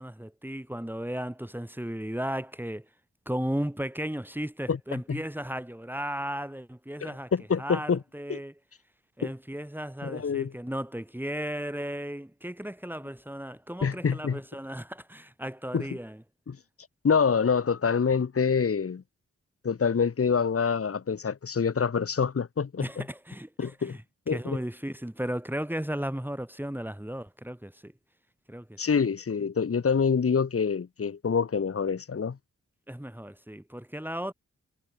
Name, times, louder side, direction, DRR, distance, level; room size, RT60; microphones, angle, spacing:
voice 1, 0.0-2.8 3.2-7.3 7.6-8.5 9.2-16.2 22.8-24.0 24.3-27.9 28.5-28.8 32.9-34.3, equal, 5° right, 5.2 m, -35 dB
voice 2, 4.7-5.2 7.0-8.0 8.3-8.4 9.2-9.3 10.0-10.5 13.8-14.4 15.7-15.9 16.5-16.6 17.0-19.0 19.6-23.0 23.6-24.0 24.3-24.6 28.8-32.4, left 6 dB, 50° left, 1.8 m, -26 dB
cardioid pair, 65°, 29 cm